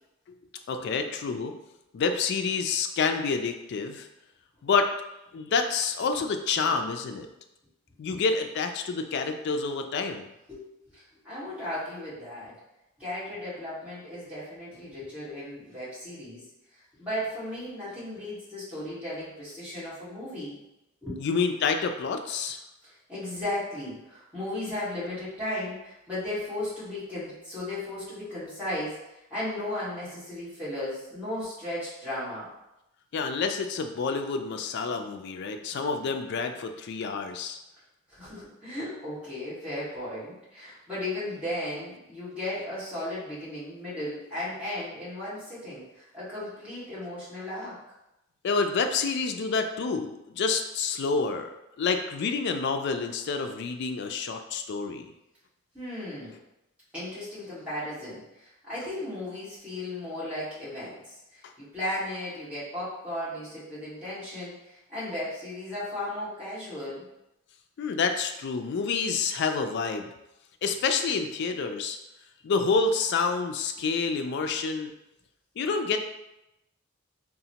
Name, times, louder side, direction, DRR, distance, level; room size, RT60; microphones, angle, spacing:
voice 1, 0.7-1.5 1.9-4.1 4.6-4.9 5.3-7.3 8.0-10.3 21.2-22.6 33.1-37.6 48.4-51.5 51.8-55.1 67.8-70.1 70.6-72.0 72.4-74.9 75.6-76.0, left 4 dB, 55° left, 6 dB, 0.3 m, -28 dB
voice 2, 10.9-12.5 13.0-16.4 16.7-20.6 21.0-21.2 22.8-29.0 29.3-32.5 38.1-47.8 55.7-56.3 56.9-67.0, left 1 dB, 5° right, -11 dB, 1.4 m, -35 dB
3.9 x 2.1 x 2.8 m, 0.90 s
head